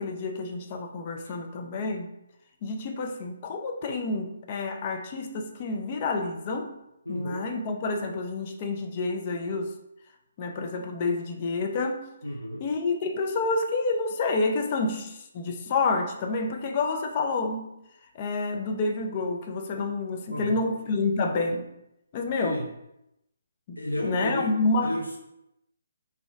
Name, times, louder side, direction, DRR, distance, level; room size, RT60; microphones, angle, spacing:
voice 1, 0.0-2.1 2.6-6.8 7.1-9.7 10.4-12.1 12.6-17.7 18.1-21.7 22.1-22.6 23.7-23.8 24.0-25.0, left 3 dB, 30° left, 3 dB, 0.5 m, -28 dB
voice 2, 7.1-7.4 12.2-12.6 20.3-20.7 22.4-22.7 23.8-24.5 24.8-25.2, left 1 dB, 85° left, -2 dB, 0.6 m, -32 dB
4.1 x 2.8 x 3.4 m, 0.85 s
figure-of-eight pair, 140°, 0 cm